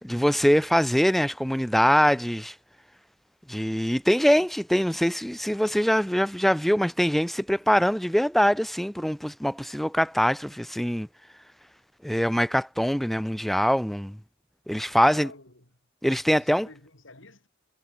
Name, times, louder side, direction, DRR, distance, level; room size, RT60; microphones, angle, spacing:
voice 1, 0.0-2.5 3.5-11.1 12.0-14.2 14.7-15.3 16.0-16.7, equal, ahead, 0.4 m, -23 dB
voice 2, 15.0-15.7 16.3-17.5, left 3 dB, 65° left, 6.7 m, -49 dB
head